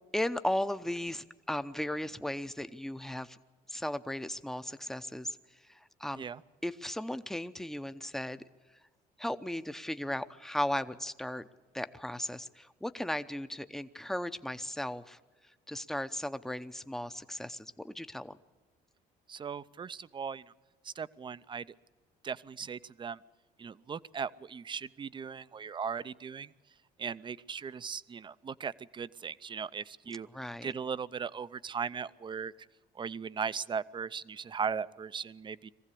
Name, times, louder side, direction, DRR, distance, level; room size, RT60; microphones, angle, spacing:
voice 1, 0.1-3.4 3.7-5.4 5.7-6.2 6.6-8.4 9.2-11.5 11.7-15.2 15.7-18.4 30.3-30.7, left 1 dB, ahead, 11 dB, 0.8 m, -36 dB
voice 2, 19.3-20.4 20.8-21.7 22.2-23.2 23.6-26.5 27.0-30.3 30.6-32.5 33.0-35.7, right 6 dB, 30° right, 16 dB, 0.6 m, -38 dB
22.5 x 15.5 x 8.4 m, 1.4 s
cardioid pair, 110°, 17 cm